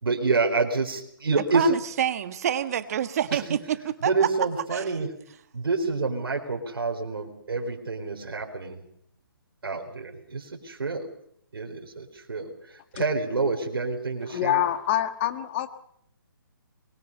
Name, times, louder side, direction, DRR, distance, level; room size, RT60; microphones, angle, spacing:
voice 1, 0.0-1.6 3.3-3.4 4.0-5.1 5.5-8.8 9.6-11.1 11.5-12.5 12.9-14.6, right 4 dB, 80° right, 2 dB, 4.5 m, -27 dB
voice 2, 1.5-4.3 4.7-5.0, right 10 dB, 40° right, 11 dB, 1.5 m, -27 dB
voice 3, 14.3-15.7, left 12 dB, 30° left, 9 dB, 1.7 m, -25 dB
25.0 x 22.5 x 5.5 m, 0.70 s
hypercardioid pair, 155°, 12 cm